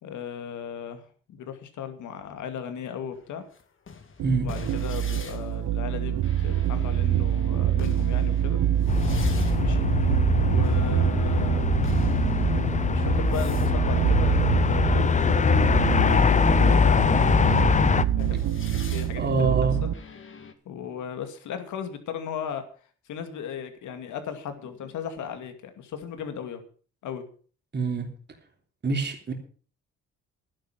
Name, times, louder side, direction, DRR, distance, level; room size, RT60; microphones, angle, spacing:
voice 1, 0.0-3.4 4.4-8.6 9.6-9.9 10.3-11.7 12.9-17.9 18.2-18.4 18.7-19.5 20.7-22.6 23.1-26.6 27.0-27.3, left 8 dB, 80° left, 8 dB, 2.4 m, -36 dB
sound 1, 3.1-15.3 16.0-20.5, left 6 dB, 40° left, 2.0 m, -42 dB
sound 2, 4.2-19.9, right 11 dB, 80° right, 1.1 m, -26 dB
sound 3, 8.9-18.0, left 6 dB, 25° left, 0.6 m, -22 dB
voice 2, 19.2-19.8 27.7-28.1 28.8-29.3, right 4 dB, 35° right, 2 dB, 3.3 m, -25 dB
12.0 x 10.5 x 6.0 m, 0.41 s
cardioid pair, 90°, 30 cm